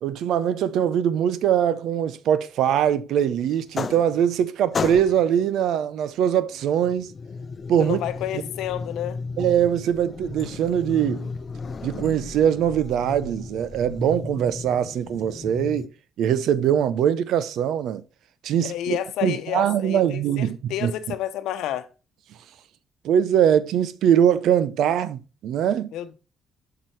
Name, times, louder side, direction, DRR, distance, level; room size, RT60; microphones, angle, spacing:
voice 1, 0.0-7.1 7.7-8.0 8.3-8.4 9.4-11.3 11.8-15.9 16.2-18.0 18.4-20.9 23.0-25.9, right 9 dB, 80° right, 0.7 m, -22 dB
sound 1, 3.5-4.4 4.7-5.4 6.5-15.9, left 4 dB, 40° left, 0.6 m, -34 dB
voice 2, 7.8-9.2 18.6-21.9 25.9-26.2, left 12 dB, 90° left, 0.9 m, -30 dB
7.4 x 6.0 x 3.2 m
cardioid pair, 90°, 0 cm